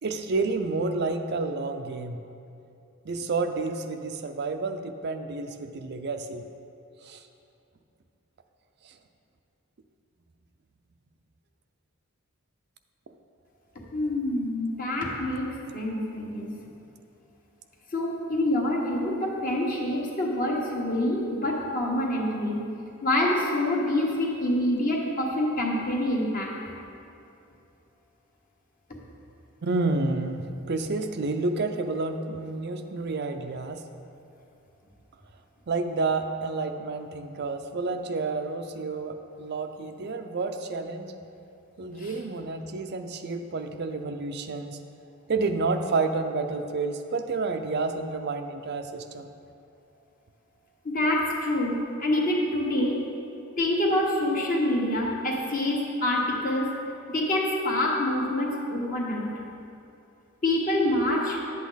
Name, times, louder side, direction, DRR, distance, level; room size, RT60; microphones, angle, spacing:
voice 1, 0.0-2.2 3.1-6.4 7.0-7.2 8.8-8.9 29.6-33.8 35.7-41.2 41.8-44.8 45.3-49.3, right 3 dB, 50° right, 6 dB, 0.5 m, -30 dB
voice 2, 13.9-15.5 15.7-16.5 17.9-22.6 23.0-26.5 42.0-42.1 50.8-53.0 53.6-56.7 57.1-59.3 60.4-61.4, left 1 dB, 40° left, -2 dB, 1.5 m, -26 dB
11.0 x 8.2 x 4.0 m, 2.6 s
head